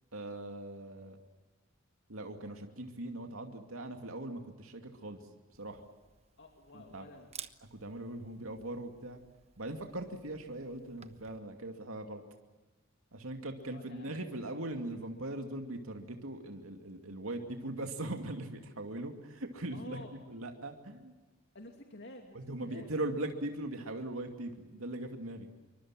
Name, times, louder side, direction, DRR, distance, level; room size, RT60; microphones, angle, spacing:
voice 1, 0.1-1.2 2.1-5.8 6.7-7.0 7.7-9.2 9.6-12.2 13.1-20.0 20.3-21.1 22.3-25.5, right 1 dB, 85° right, 4 dB, 2.5 m, -40 dB
Camera, 5.5-11.4, right 8 dB, 30° right, 1.1 m, -54 dB
voice 2, 6.4-7.6 8.1-8.4 13.7-14.3 19.7-20.1 21.5-22.9, left 1 dB, 55° left, 2 dB, 2.7 m, -51 dB
27.0 x 24.5 x 7.5 m, 1.2 s
head